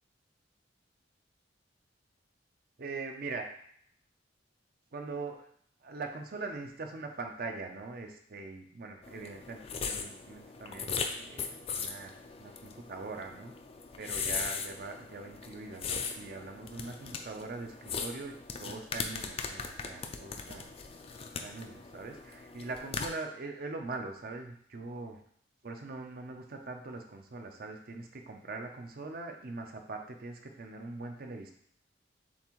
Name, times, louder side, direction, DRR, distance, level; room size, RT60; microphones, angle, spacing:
voice 1, 2.8-3.6 4.9-5.5 5.8-13.5 14.0-20.7 21.4-25.2 25.6-31.5, right 3 dB, 50° right, 4 dB, 0.6 m, -42 dB
sound 1, 9.0-23.1, left 5 dB, 30° left, 0.3 m, -39 dB
7.0 x 2.5 x 3.0 m, 0.64 s
head